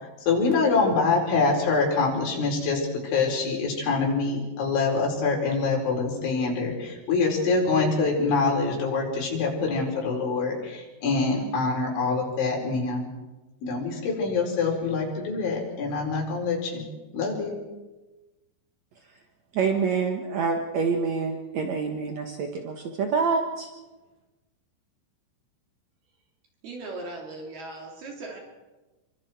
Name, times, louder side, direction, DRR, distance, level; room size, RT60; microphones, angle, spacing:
voice 1, 0.3-13.1 13.6-16.8 17.1-17.6, left 4 dB, 85° left, -1 dB, 7.2 m, -25 dB
voice 2, 19.5-23.7, right 5 dB, 75° right, 3 dB, 1.6 m, -27 dB
voice 3, 26.6-28.4, right 2 dB, 60° right, 0 dB, 4.7 m, -38 dB
28.5 x 24.5 x 4.6 m, 1.1 s
omnidirectional pair, 5.3 m